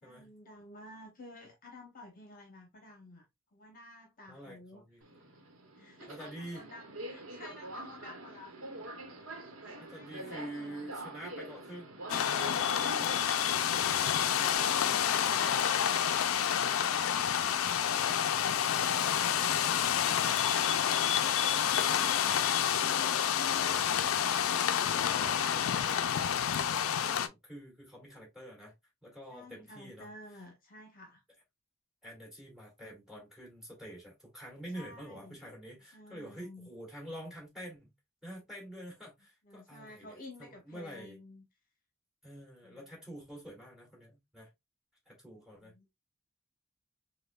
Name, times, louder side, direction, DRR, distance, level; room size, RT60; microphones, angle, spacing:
voice 1, 0.0-3.3 3.5-4.8 5.8-8.7 9.7-11.1 16.3-20.3 29.3-31.2 34.7-35.5 35.9-36.7 39.4-41.5 42.6-42.9 45.6-45.9, left 2 dB, 45° left, 0.9 m, -52 dB
voice 2, 4.3-5.0 6.1-6.6 9.8-13.2 14.3-14.5 25.5-28.7 29.0-30.1 32.0-37.9 38.2-41.2 42.2-44.5 45.1-45.7, right 1 dB, ahead, 2.1 m, -47 dB
Subway metro underground, 5.0-14.6, right 1 dB, 80° right, 0.9 m, -46 dB
sound 1, 12.1-27.3, left 9 dB, 80° left, 0.4 m, -29 dB
5.2 x 2.2 x 2.3 m
head